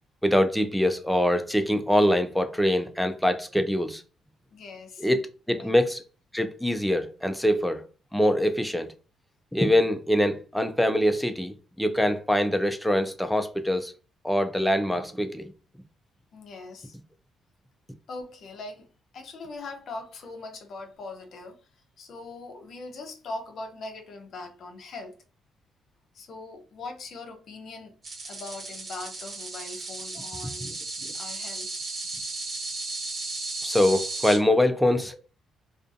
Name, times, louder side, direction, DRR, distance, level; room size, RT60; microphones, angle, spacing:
voice 1, 0.2-4.0 5.0-5.2 5.5-6.0 6.3-7.8 8.1-8.9 9.5-13.9 14.2-15.5 30.6-30.7 33.6-35.1, left 1 dB, ahead, 0.3 m, -24 dB
voice 2, 4.5-5.1 5.5-5.7 16.3-17.0 18.1-18.9 19.1-21.6 22.0-25.2 26.1-27.9 28.2-30.8 31.1-31.7, left 3 dB, 65° left, 0.5 m, -41 dB
sound 1, 28.0-34.4, right 3 dB, 40° right, 0.8 m, -35 dB
2.4 x 2.3 x 2.5 m
cardioid pair, 90°, 0 cm